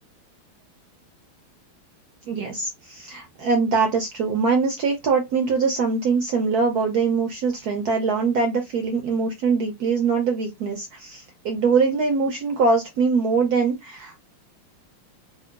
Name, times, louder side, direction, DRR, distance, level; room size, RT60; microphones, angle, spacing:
voice 1, 2.3-14.2, right 4 dB, 75° right, 0.8 m, -23 dB
4.7 x 2.1 x 2.3 m
omnidirectional pair, 2.3 m